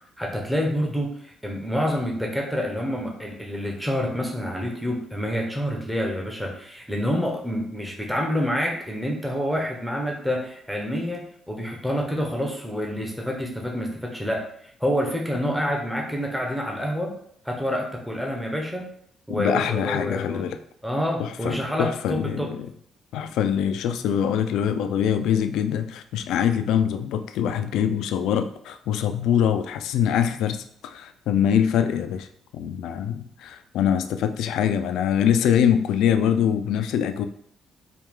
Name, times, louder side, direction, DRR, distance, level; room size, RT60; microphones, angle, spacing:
voice 1, 0.2-14.4 14.8-17.1 17.4-18.8 19.3-20.5 20.8-22.5, equal, 5° right, -1 dB, 0.9 m, -27 dB
voice 2, 19.3-20.6 21.2-22.7 23.1-32.3 32.5-37.3, left 9 dB, 85° left, 8 dB, 0.3 m, -24 dB
4.4 x 2.3 x 3.6 m, 0.66 s
cardioid pair, 80°, 0 cm